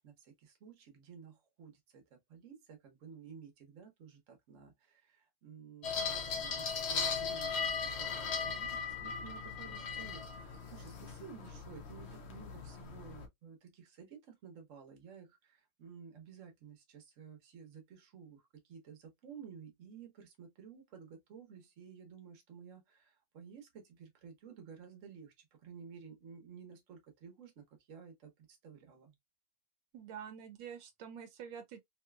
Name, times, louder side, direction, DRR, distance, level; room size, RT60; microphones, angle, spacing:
voice 1, 0.0-29.1, right 6 dB, 50° right, 1.2 m, -54 dB
sound 1, 5.8-13.3, left 5 dB, 75° left, 0.5 m, -38 dB
voice 2, 29.9-31.8, right 8 dB, 80° right, 1.3 m, -47 dB
3.2 x 2.9 x 2.2 m
omnidirectional pair, 2.0 m